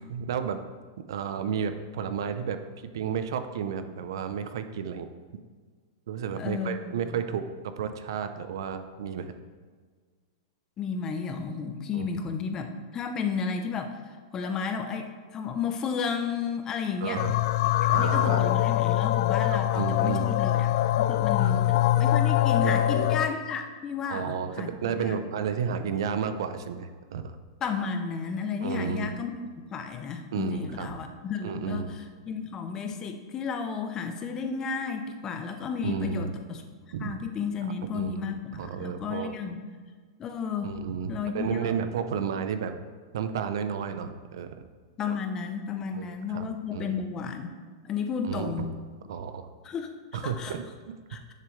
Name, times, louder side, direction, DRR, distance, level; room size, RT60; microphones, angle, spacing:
voice 1, 0.1-0.6 1.1-2.6 2.9-5.1 6.1-9.3 11.9-12.1 17.0-17.3 17.9-18.5 19.4-20.3 21.4-21.6 22.6-23.1 24.1-27.4 28.6-29.2 30.3-30.9 31.4-31.9 35.8-36.3 36.9-37.2 37.9-39.3 40.6-42.7 43.1-44.6 45.9-46.4 46.7-47.0 48.2-48.7 49.1-49.5 50.1-50.6, right 7 dB, 70° right, 10 dB, 0.7 m, -32 dB
voice 2, 6.4-7.0 10.8-13.9 14.3-17.2 17.6-20.7 21.0-25.2 27.6-29.4 29.7-39.6 40.2-40.7 41.1-41.7 45.0-47.5 47.8-48.7 49.6-50.0 50.2-50.6 51.1-51.2, left 6 dB, 25° left, 6 dB, 0.7 m, -33 dB
sound 1, 17.2-23.3, left 13 dB, 55° left, 0.3 m, -23 dB
10.5 x 6.6 x 3.3 m, 1.5 s
hypercardioid pair, 145°, 2 cm